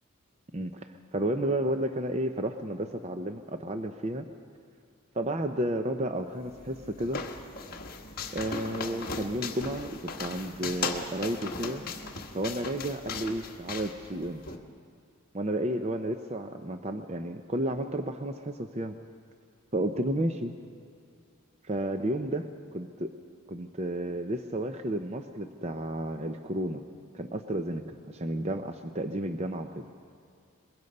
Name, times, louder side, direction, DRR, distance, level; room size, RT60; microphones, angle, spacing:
voice 1, 1.1-4.2 5.1-7.2 8.3-11.8 12.3-14.4 15.3-19.0 19.7-20.5 21.6-23.1 23.5-26.8 27.1-29.8, right 1 dB, 30° right, 7 dB, 0.6 m, -32 dB
sound 1, 6.4-14.6, left 4 dB, 45° left, 1.4 m, -38 dB
23.0 x 22.5 x 5.4 m, 2.3 s
head